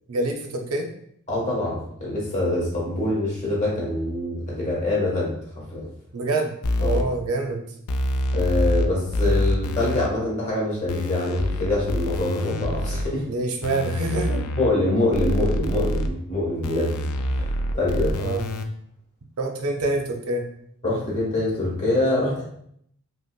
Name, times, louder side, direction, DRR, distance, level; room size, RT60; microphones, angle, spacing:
voice 1, 0.1-0.9 6.1-7.6 13.3-14.4 18.2-18.4 19.4-20.5, right 2 dB, 75° right, 3 dB, 0.6 m, -26 dB
voice 2, 1.3-5.3 5.7-5.9 6.8-7.0 8.3-13.2 14.6-16.9 17.3-18.1 20.8-22.4, left 2 dB, 30° left, -5 dB, 1.3 m, -24 dB
sound 1, 6.6-7.0 7.9-8.9 9.1-10.1 10.9-13.0 13.6-14.7 15.1-16.1 16.6-18.6, left 1 dB, 80° left, 0.4 m, -25 dB
5.3 x 2.0 x 2.3 m, 0.69 s
head